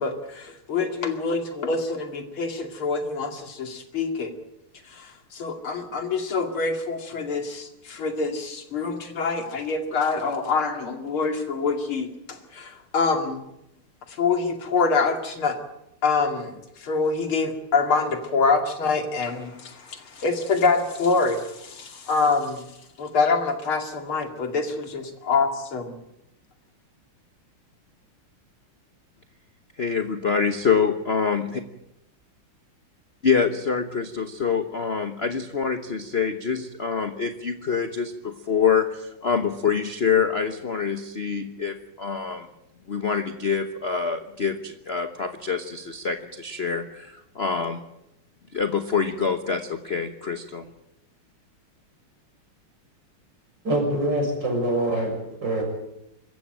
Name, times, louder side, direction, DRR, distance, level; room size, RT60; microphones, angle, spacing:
voice 1, 0.0-4.3 4.9-13.4 14.2-15.6 16.0-22.6 23.0-25.9, left 4 dB, 80° left, 5 dB, 3.3 m, -25 dB
voice 2, 29.8-31.6 33.2-42.5 42.9-47.8 48.5-50.7, left 6 dB, 40° left, 8 dB, 1.1 m, -25 dB
voice 3, 53.6-55.2 55.4-55.6, right 1 dB, 55° right, 2 dB, 7.1 m, -24 dB
25.5 x 14.5 x 9.0 m, 0.87 s
omnidirectional pair, 2.3 m